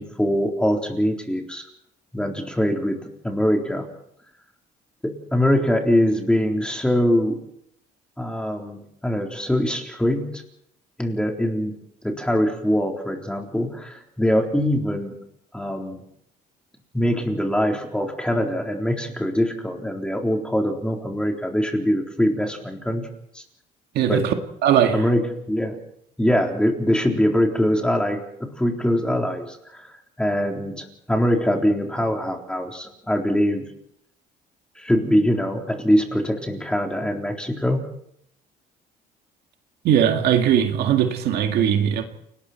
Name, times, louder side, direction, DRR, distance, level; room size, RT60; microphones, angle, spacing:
voice 1, 0.0-1.7 2.1-3.9 5.0-7.4 8.2-10.4 11.0-11.8 12.0-15.2 15.5-16.0 16.9-23.1 23.3-23.4 24.1-24.3 24.9-25.8 26.2-29.9 30.2-33.7 34.8-37.9, equal, 5° left, 3.9 m, -23 dB
voice 2, 24.0-24.3 24.6-25.0 39.8-42.0, right 9 dB, 75° right, 2.0 m, -19 dB
29.5 x 19.5 x 4.5 m
cardioid pair, 110°, 17 cm